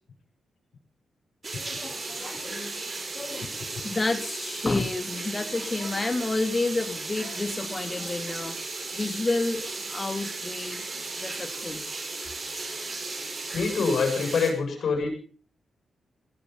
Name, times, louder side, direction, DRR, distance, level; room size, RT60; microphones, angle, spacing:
sound 1, 1.4-14.5, right 3 dB, 40° right, 4.7 m, -35 dB
voice 1, 1.5-2.8 3.1-8.6 8.9-12.0, left 2 dB, 25° left, 9 dB, 2.6 m, -30 dB
voice 2, 2.4-2.9 8.0-8.1 13.5-15.1, left 4 dB, 65° left, 3 dB, 7.6 m, -26 dB
19.0 x 12.5 x 5.6 m, 0.41 s
cardioid pair, 85°, 0 cm